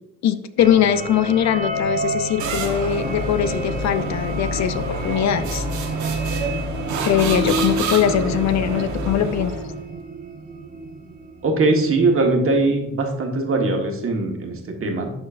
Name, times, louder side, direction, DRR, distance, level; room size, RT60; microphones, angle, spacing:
voice 1, 0.2-5.6 7.0-9.5, left 9 dB, 65° left, 12 dB, 0.5 m, -21 dB
sound 1, 0.6-11.8, right 1 dB, 30° right, 0.8 m, -30 dB
sound 2, 2.4-9.8, right 2 dB, 70° right, 1.2 m, -28 dB
voice 2, 11.4-15.1, right 2 dB, 45° right, 3 dB, 1.3 m, -21 dB
11.5 x 4.2 x 2.5 m, 0.93 s
cardioid pair, 90°, 30 cm